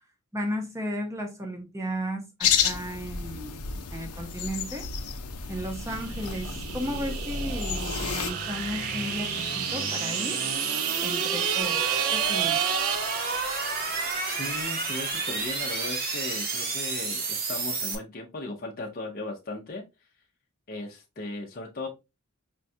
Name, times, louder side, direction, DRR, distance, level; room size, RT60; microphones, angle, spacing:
voice 1, 0.3-3.6 3.9-4.9 5.5-10.4 11.0-12.6, equal, 15° right, 0.7 m, -34 dB
sound 1, 2.4-8.3, left 8 dB, 90° left, 0.6 m, -31 dB
sound 2, 4.6-18.0, right 3 dB, 45° right, 0.8 m, -32 dB
sound 3, 5.9-13.9, right 11 dB, 70° right, 0.4 m, -31 dB
voice 2, 14.3-19.8 20.7-21.9, left 2 dB, 40° left, 0.6 m, -37 dB
5.1 x 2.3 x 2.6 m
head